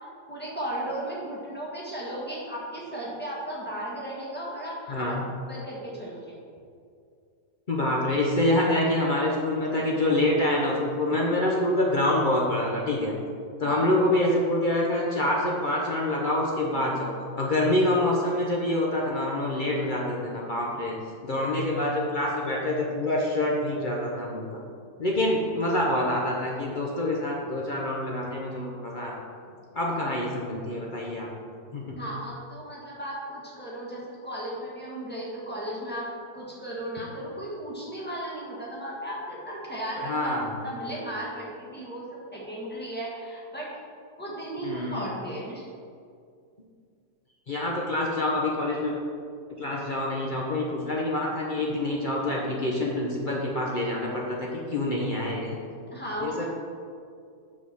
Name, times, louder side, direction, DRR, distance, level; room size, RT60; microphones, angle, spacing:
voice 1, 0.3-5.1 5.5-6.4 13.6-13.8 32.0-36.1 36.3-40.3 40.6-43.7 44.2-45.7 55.9-56.5, right 1 dB, 5° left, -6 dB, 1.4 m, -35 dB
voice 2, 4.9-5.2 7.7-13.1 13.6-20.9 21.2-24.4 25.0-29.1 29.7-31.3 31.7-32.0 40.1-40.5 44.6-45.0 47.5-48.9 49.6-55.5 56.2-56.4, left 1 dB, 55° left, -3 dB, 0.5 m, -26 dB
5.8 x 4.8 x 6.3 m, 2.3 s
omnidirectional pair, 2.0 m